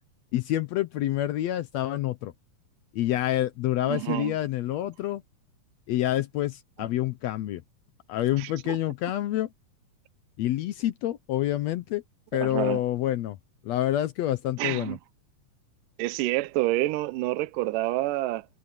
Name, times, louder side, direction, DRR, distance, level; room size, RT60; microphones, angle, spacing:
voice 1, 0.3-2.3 2.9-5.2 5.9-7.6 8.1-9.5 10.4-12.0 12.3-13.4 13.6-15.0, left 13 dB, 75° left, 1.6 m, -27 dB
voice 2, 3.9-4.4 8.4-8.8 12.4-12.8 14.6-15.0 16.0-18.5, right 17 dB, 85° right, 2.3 m, -28 dB
omnidirectional pair, 3.8 m